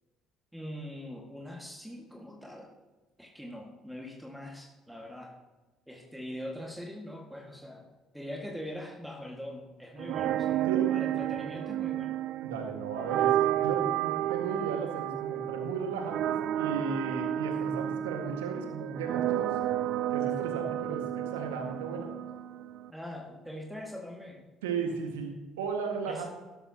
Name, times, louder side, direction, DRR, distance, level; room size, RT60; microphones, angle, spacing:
voice 1, 0.5-2.8 3.2-5.3 5.9-7.9 8.1-10.6 10.9-12.2 22.9-24.4 26.1-26.2, left 1 dB, 5° right, 0 dB, 1.8 m, -42 dB
sound 1, 10.0-22.9, right 12 dB, 65° right, 0.3 m, -31 dB
voice 2, 12.4-19.6 20.1-22.1 24.6-26.3, right 5 dB, 85° right, 4 dB, 1.7 m, -35 dB
12.0 x 12.0 x 2.9 m, 1.1 s
hypercardioid pair, 55°, 0 cm